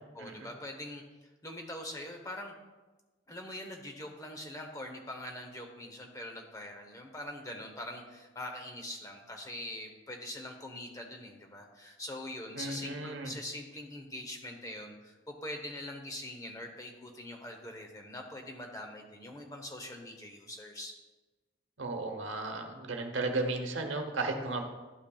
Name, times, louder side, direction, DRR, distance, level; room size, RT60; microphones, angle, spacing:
voice 1, 0.2-1.0 1.4-2.5 3.3-20.9, left 1 dB, 15° left, 2 dB, 0.8 m, -43 dB
voice 2, 12.5-13.3 21.8-24.6, right 2 dB, 80° right, 5 dB, 0.9 m, -34 dB
11.5 x 5.7 x 2.3 m, 1.2 s
head